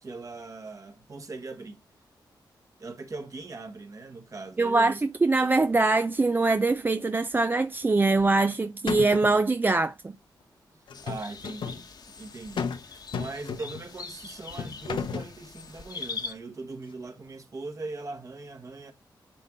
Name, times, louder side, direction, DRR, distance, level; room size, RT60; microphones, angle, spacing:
voice 1, 0.0-1.8 2.8-5.0 5.4-5.5 10.7-11.9 12.2-18.9, right 3 dB, 40° right, 1.5 m, -40 dB
voice 2, 4.6-10.1, right 3 dB, 25° right, 0.4 m, -23 dB
sound 1, 8.2-8.6 8.9-9.4 10.9-11.8 12.6-12.9 13.1-13.9 14.6-15.3, left 6 dB, 85° left, 1.0 m, -33 dB
sound 2, 10.9-16.3, left 4 dB, 55° left, 1.2 m, -42 dB
10.0 x 3.6 x 3.8 m
wide cardioid pair, 105°, 8 cm